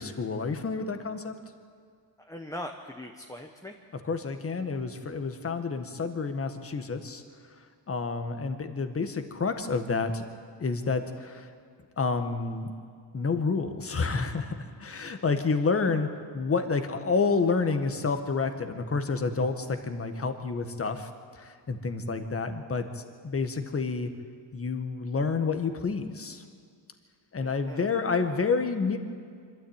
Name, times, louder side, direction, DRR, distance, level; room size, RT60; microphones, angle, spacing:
voice 1, 0.0-1.3 4.0-10.2 10.6-11.5 12.0-12.7 13.1-16.1 16.3-24.1 24.5-26.4 27.3-29.0, left 4 dB, 30° left, 7 dB, 1.7 m, -29 dB
voice 2, 2.2-3.7 27.4-27.9, left 1 dB, 5° left, 2 dB, 1.1 m, -41 dB
24.5 x 13.0 x 9.0 m, 2.2 s
cardioid pair, 115°, 46 cm